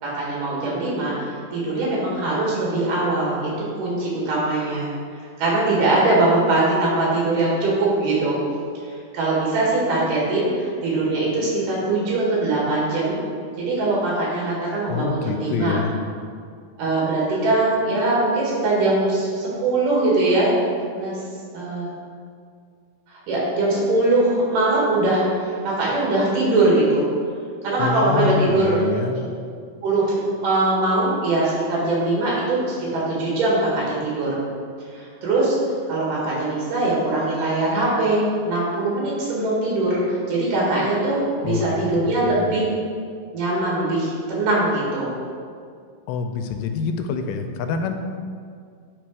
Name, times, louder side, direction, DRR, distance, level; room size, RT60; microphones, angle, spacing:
voice 1, 0.0-3.5 3.8-4.9 5.4-8.4 9.1-13.2 13.6-15.8 16.8-20.5 20.9-21.1 21.5-21.9 23.1-27.0 27.6-29.3 29.8-34.4 34.9-35.5 35.9-42.6 43.3-45.1, right 2 dB, 70° right, -5 dB, 3.4 m, -21 dB
voice 2, 14.9-16.0 27.8-29.2 41.4-41.9 42.2-42.5 46.1-48.0, left 5 dB, 85° left, 6 dB, 2.2 m, -26 dB
10.0 x 3.7 x 4.7 m, 2.1 s
omnidirectional pair, 4.0 m